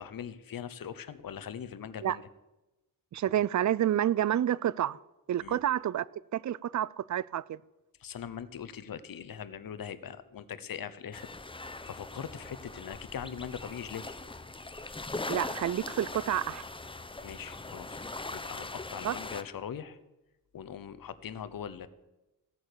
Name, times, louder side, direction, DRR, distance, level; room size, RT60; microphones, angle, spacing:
voice 1, 0.0-2.3 5.4-5.6 8.0-11.3 11.8-14.1 17.2-18.0 18.3-20.0 20.5-21.9, left 8 dB, 65° left, 0.9 m, -41 dB
voice 2, 3.1-5.0 5.3-7.6 15.3-16.6 19.0-19.1, right 11 dB, 50° right, 0.4 m, -29 dB
sound 1, 11.1-19.4, left 2 dB, 15° left, 0.8 m, -41 dB
15.5 x 8.8 x 6.8 m
wide cardioid pair, 120°, 36 cm